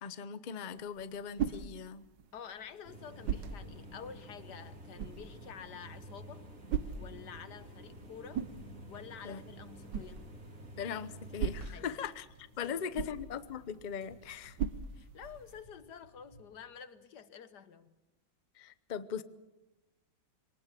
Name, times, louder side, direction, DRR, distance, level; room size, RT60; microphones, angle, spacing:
voice 1, 0.0-2.0 9.2-9.4 10.8-12.3 12.6-14.6 18.6-19.2, left 7 dB, 45° left, 13 dB, 0.6 m, -39 dB
sound 1, 0.7-15.6, right 8 dB, 65° right, 1.5 m, -42 dB
voice 2, 2.3-6.5 7.0-8.4 8.9-10.2 11.7-12.0 12.6-13.1 14.6-17.9, left 7 dB, 60° left, 12 dB, 1.6 m, -49 dB
sound 2, 2.8-11.7, right 1 dB, 40° right, 3.1 m, -50 dB
sound 3, 8.4-16.4, right 1 dB, 85° right, 7.5 m, -61 dB
23.5 x 19.0 x 7.6 m, 1.0 s
omnidirectional pair, 2.1 m